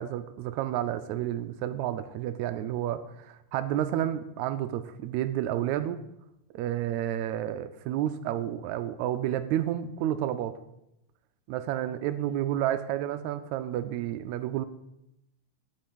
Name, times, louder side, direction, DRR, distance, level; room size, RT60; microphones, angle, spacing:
voice 1, 0.0-6.0 6.5-10.5 11.5-14.7, right 11 dB, 80° right, 11 dB, 1.8 m, -30 dB
9.0 x 5.5 x 7.8 m, 0.85 s
omnidirectional pair, 3.3 m